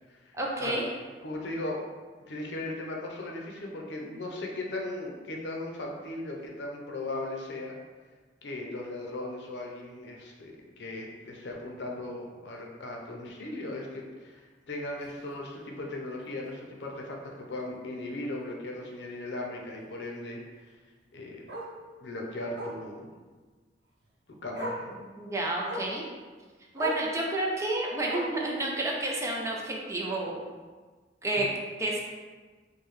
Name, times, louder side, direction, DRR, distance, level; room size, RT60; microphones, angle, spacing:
voice 1, 0.3-0.8 25.2-26.1 26.7-30.4 31.2-31.5 31.8-32.0, right 1 dB, 15° right, -2 dB, 0.5 m, -30 dB
voice 2, 1.2-1.8 2.3-7.7 8.4-20.4 21.1-21.5 22.0-23.1 24.4-25.0 31.4-31.5, left 2 dB, 80° left, 0 dB, 0.6 m, -37 dB
Bark, 15.0-15.2 15.6-15.7 16.1-16.2 16.5-16.6 18.0-18.1 20.6-20.7 21.5-21.7 22.5-22.8 24.0-24.1 24.5-24.9 25.6-26.0 26.7-27.1 28.0-28.5 29.4-29.5, right 1 dB, 80° right, 0.7 m, -36 dB
4.8 x 2.2 x 3.1 m, 1.4 s
head